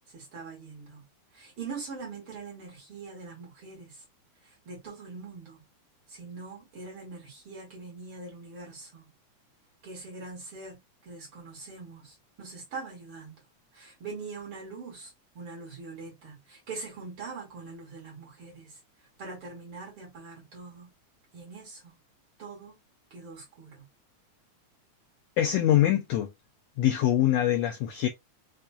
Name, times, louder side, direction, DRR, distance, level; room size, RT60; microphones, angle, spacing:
voice 1, 0.1-1.0 1.3-4.0 4.4-5.6 6.1-9.1 9.8-13.4 13.7-20.9 21.3-22.0 22.4-22.8 23.1-23.9, right 4 dB, 50° right, 2.3 m, -43 dB
voice 2, 25.4-26.3 26.8-28.1, left 12 dB, 80° left, 1.5 m, -24 dB
5.5 x 2.5 x 2.3 m
omnidirectional pair, 3.5 m